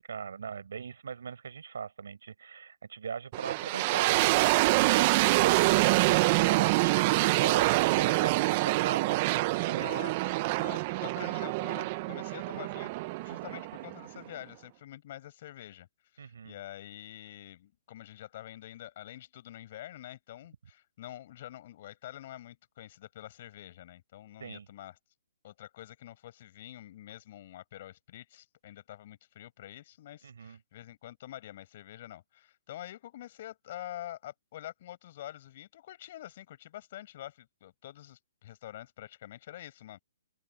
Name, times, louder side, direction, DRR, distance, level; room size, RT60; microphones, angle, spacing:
voice 1, 0.1-9.9 16.2-16.5 24.4-24.7 30.2-30.6, right 6 dB, 75° right, 6.6 m, -39 dB
sound 1, 3.3-14.3, right 21 dB, 35° right, 0.7 m, -26 dB
voice 2, 9.5-12.9 13.2-15.9 16.1-25.0 25.4-40.0, left 13 dB, 45° left, 6.5 m, -46 dB
open air
hypercardioid pair, 150°, 0 cm